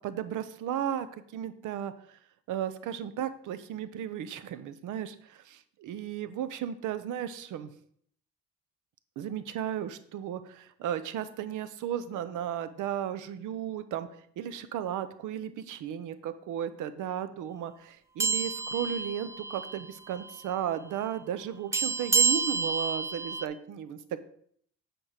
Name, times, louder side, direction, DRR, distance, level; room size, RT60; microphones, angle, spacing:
voice 1, 0.0-1.9 2.5-7.7 9.2-14.1 14.4-24.2, right 10 dB, 85° right, 13 dB, 0.7 m, -35 dB
sound 1, 18.2-19.9 20.1-20.4 21.7-23.5, right 5 dB, 10° right, 0.4 m, -29 dB
8.8 x 4.5 x 4.9 m, 0.64 s
cardioid pair, 90°, 30 cm